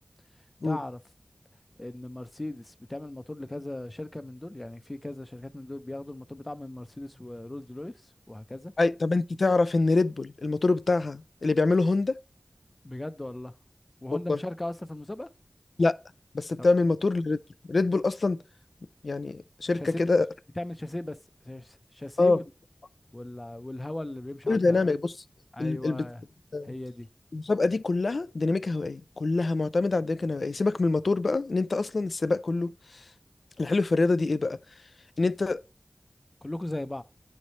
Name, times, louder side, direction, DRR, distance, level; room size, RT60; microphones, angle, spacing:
voice 1, 0.6-1.0 1.8-8.7 12.8-13.5 14.0-15.3 16.6-16.7 19.7-20.1 20.6-21.2 21.4-22.4 23.1-24.9 25.5-26.2 26.6-27.1 36.4-37.0, left 1 dB, 30° left, 0.6 m, -38 dB
voice 2, 8.8-12.2 14.3-14.4 15.8-16.0 16.3-17.4 17.7-18.4 19.0-20.3 22.2-22.4 24.5-25.2 25.6-26.1 26.5-26.7 27.3-32.7 33.6-34.6 35.2-35.6, left 3 dB, 75° left, 0.3 m, -25 dB
9.1 x 3.2 x 4.1 m
wide cardioid pair, 60°, 0 cm